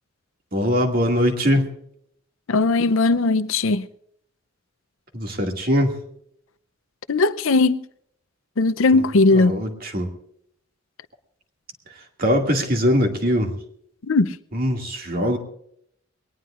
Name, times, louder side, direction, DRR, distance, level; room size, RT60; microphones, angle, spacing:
voice 1, 0.5-1.7 5.1-5.9 8.9-9.0 9.3-10.1 12.2-13.5 14.5-15.4, equal, 45° right, 2.2 m, -21 dB
voice 2, 2.5-3.9 7.1-7.8 8.6-9.6 14.1-14.3, left 3 dB, 80° left, 0.6 m, -18 dB
22.5 x 18.5 x 2.5 m
head